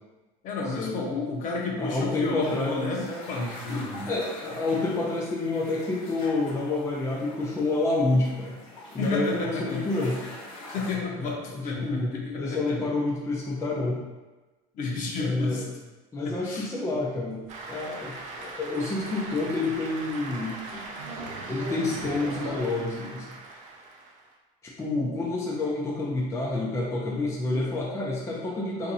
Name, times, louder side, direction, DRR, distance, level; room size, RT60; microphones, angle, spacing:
voice 1, 0.4-4.1 9.0-9.8 10.7-12.8 14.7-15.7 16.2-16.7, left 3 dB, 50° left, -2 dB, 0.8 m, -31 dB
voice 2, 1.8-2.9 4.1-8.5 8.9-10.2 11.2-12.1 12.4-14.0 15.2-15.6 16.1-17.4 17.7-20.6 21.5-23.3 24.6-28.9, left 2 dB, 15° left, -5 dB, 0.5 m, -28 dB
sound 1, 2.4-11.0, left 2 dB, 80° left, 1.2 m, -43 dB
Cheering / Applause, 17.5-24.3, right 3 dB, 45° right, 0.5 m, -40 dB
sound 2, 17.5-17.6 17.8-18.1 18.4-18.5 18.7-18.8 19.1-19.2 19.4-19.6 20.1-20.2 20.7-22.6, right 2 dB, 90° right, 0.8 m, -38 dB
2.7 x 2.5 x 4.0 m, 1.2 s
cardioid pair, 140°, 18 cm